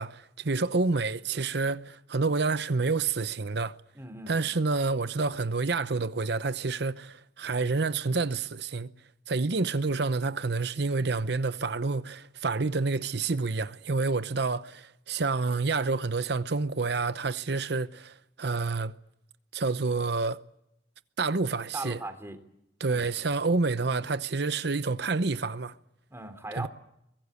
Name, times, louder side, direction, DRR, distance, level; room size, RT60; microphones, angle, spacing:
voice 1, 0.0-3.7 4.3-8.9 9.3-18.9 19.5-20.4 21.2-22.0 22.8-25.7 26.6-26.7, right 3 dB, 60° right, 0.8 m, -28 dB
voice 2, 3.9-4.4 21.7-22.4 22.9-23.1 26.1-26.7, right 2 dB, 15° right, 3.2 m, -38 dB
23.5 x 21.0 x 8.4 m
head